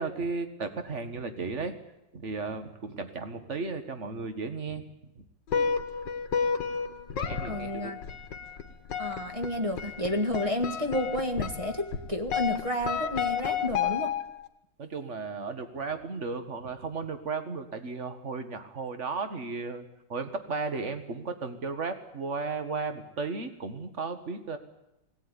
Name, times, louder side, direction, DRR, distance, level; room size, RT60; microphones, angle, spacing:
voice 1, 0.0-1.7 2.1-4.8 5.2-5.3 5.5-5.6 7.3-7.9 14.8-24.6, right 4 dB, 40° right, 9 dB, 1.9 m, -35 dB
sound 1, 5.5-14.5, left 7 dB, 70° left, 2.0 m, -32 dB
voice 2, 7.4-8.0 9.0-14.1, left 1 dB, 20° right, 5 dB, 1.5 m, -31 dB
19.5 x 17.5 x 9.9 m, 0.91 s
omnidirectional pair, 2.0 m